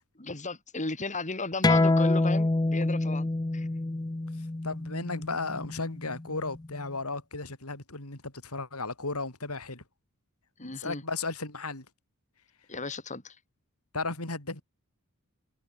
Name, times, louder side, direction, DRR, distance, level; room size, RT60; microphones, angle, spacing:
voice 1, 0.2-3.7 10.6-11.0 12.7-13.4, left 3 dB, 35° left, 4.0 m, -35 dB
sound 1, 1.6-6.8, left 2 dB, 20° left, 0.5 m, -27 dB
voice 2, 4.6-9.8 10.6-11.9 13.9-14.6, left 3 dB, 80° left, 5.2 m, -35 dB
head